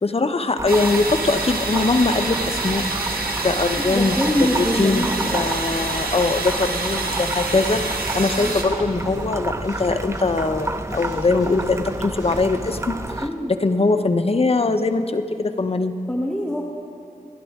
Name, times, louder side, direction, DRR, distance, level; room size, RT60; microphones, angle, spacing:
voice 1, 0.0-2.9 3.4-4.2 4.4-7.8 8.1-13.0 13.5-15.9, left 3 dB, 40° left, 7 dB, 0.7 m, -21 dB
sound 1, 0.6-13.3, right 2 dB, 20° right, 0.6 m, -30 dB
sound 2, 0.7-8.6, right 3 dB, 85° right, 1.3 m, -27 dB
voice 2, 3.8-5.4 8.4-8.5 13.2-13.5 16.1-16.6, equal, 5° left, -1 dB, 1.1 m, -24 dB
sound 3, 7.7-8.7 9.0-12.8, left 1 dB, 25° left, 4.0 m, -41 dB
29.0 x 11.0 x 3.6 m, 2.6 s
wide cardioid pair, 75°, 15 cm